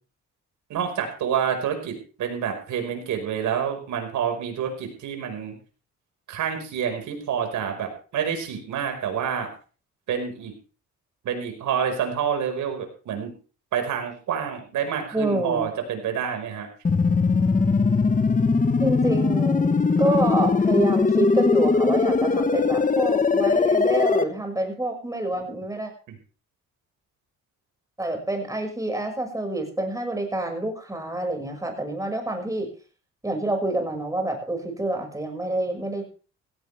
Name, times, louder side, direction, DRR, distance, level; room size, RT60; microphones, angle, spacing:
voice 1, 0.7-5.6 6.3-9.5 10.1-10.5 11.2-13.3 13.7-16.7, right 8 dB, 80° right, 5 dB, 5.3 m, -28 dB
voice 2, 15.1-15.7 18.8-25.9 28.0-32.7 33.2-36.0, right 1 dB, 10° right, 4 dB, 6.2 m, -27 dB
sound 1, 16.8-24.2, left 4 dB, 25° left, 1.3 m, -20 dB
17.0 x 16.0 x 3.5 m, 0.38 s
cardioid pair, 90°, 30 cm